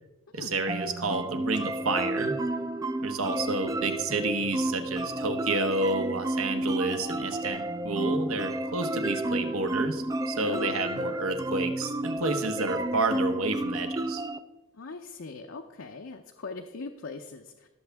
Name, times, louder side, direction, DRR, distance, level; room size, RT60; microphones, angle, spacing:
voice 1, 0.3-2.3 3.0-14.2, right 3 dB, 80° right, 7 dB, 1.2 m, -30 dB
sound 1, 0.7-14.4, right 1 dB, 15° right, 0.3 m, -31 dB
voice 2, 10.4-10.8 14.7-17.7, left 3 dB, 65° left, 4 dB, 0.6 m, -40 dB
17.5 x 7.2 x 3.5 m, 1.0 s
head